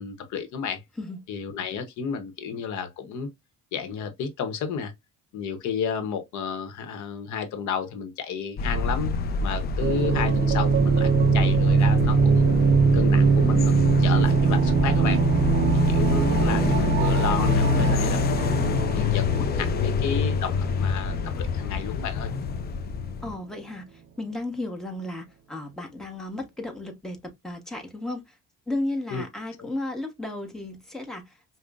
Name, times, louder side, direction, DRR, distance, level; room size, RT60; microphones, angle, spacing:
voice 1, 0.0-0.8 1.3-3.3 3.7-4.9 5.3-12.5 12.9-15.2 15.9-22.3 29.1-29.2 29.6-29.7, left 6 dB, 65° left, 0.9 m, -32 dB
sound 1, 8.6-23.4, left 4 dB, 30° left, 0.4 m, -26 dB
sound 2, 9.8-22.5, right 5 dB, 35° right, 0.4 m, -22 dB
voice 2, 23.2-28.2 28.7-31.3, left 2 dB, ahead, 0.9 m, -34 dB
5.1 x 2.1 x 2.4 m
cardioid pair, 120°, 32 cm